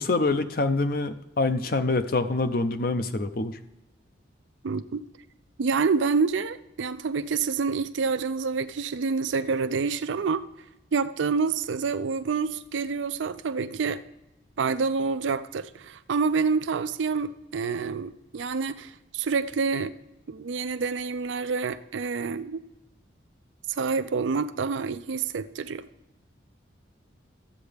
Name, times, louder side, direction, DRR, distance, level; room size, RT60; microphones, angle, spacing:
voice 1, 0.0-3.6, left 3 dB, 50° left, 10 dB, 0.6 m, -25 dB
voice 2, 4.6-5.0 5.6-10.4 10.9-14.0 14.6-19.9 20.3-22.6 23.7-25.9, right 5 dB, 75° right, 12 dB, 0.4 m, -27 dB
13.0 x 8.0 x 3.4 m, 0.92 s
head